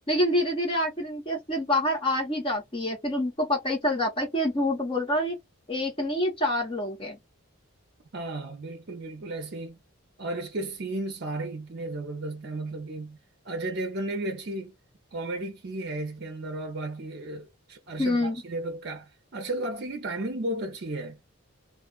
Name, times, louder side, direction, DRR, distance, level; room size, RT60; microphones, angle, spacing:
voice 1, 0.1-5.3 5.7-7.2 18.0-18.4, left 1 dB, 25° left, 0.9 m, -26 dB
voice 2, 8.1-9.8 10.2-13.2 13.4-14.7 15.1-21.2, right 2 dB, 50° right, 0.6 m, -34 dB
2.5 x 2.3 x 2.3 m
head